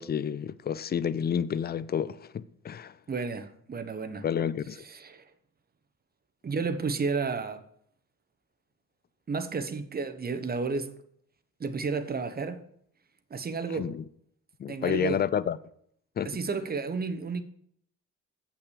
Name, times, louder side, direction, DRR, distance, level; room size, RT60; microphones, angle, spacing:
voice 1, 0.0-2.9 4.2-4.8 13.8-14.0 14.6-15.6 16.2-16.3, left 8 dB, 35° left, 0.5 m, -30 dB
voice 2, 3.1-4.3 4.7-5.3 6.4-7.6 9.3-11.0 11.6-12.6 13.3-13.9 14.7-15.2 16.2-17.4, right 4 dB, 30° right, 1.0 m, -32 dB
8.0 x 5.9 x 6.9 m
cardioid pair, 90°, 30 cm